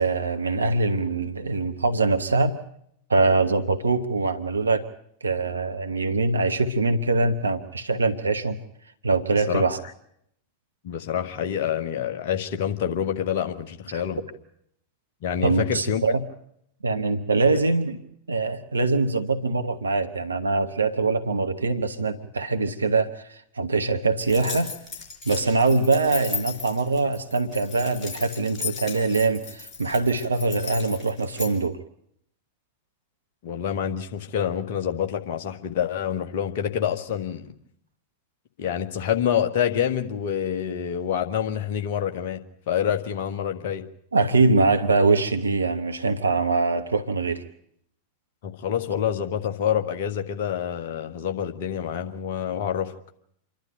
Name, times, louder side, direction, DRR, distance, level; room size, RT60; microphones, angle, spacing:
voice 1, 0.0-2.5 3.1-4.9 5.2-8.6 9.0-9.8 13.9-14.0 15.4-16.2 16.8-18.0 18.3-24.7 25.2-31.8 44.1-47.4, right 3 dB, 75° right, 9 dB, 1.1 m, -23 dB
voice 2, 10.8-14.2 15.2-16.0 17.5-17.6 33.4-37.5 38.6-42.4 42.7-43.8 48.4-52.9, left 9 dB, 50° left, 5 dB, 1.7 m, -27 dB
sound 1, 24.2-31.5, left 5 dB, 30° left, 5.1 m, -36 dB
27.5 x 12.0 x 9.0 m, 0.71 s
figure-of-eight pair, 90°, 0 cm